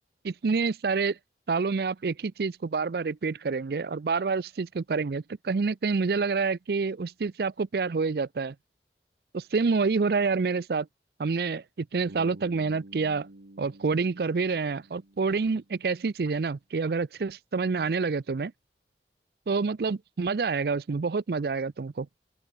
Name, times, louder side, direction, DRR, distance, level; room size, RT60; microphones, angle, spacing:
voice 1, 0.2-1.2 1.5-8.5 9.3-10.9 11.2-13.3 13.6-18.5 19.5-22.1, right 4 dB, 60° right, 0.5 m, -28 dB
Bass guitar, 12.1-16.0, right 1 dB, 85° right, 1.7 m, -50 dB
open air
head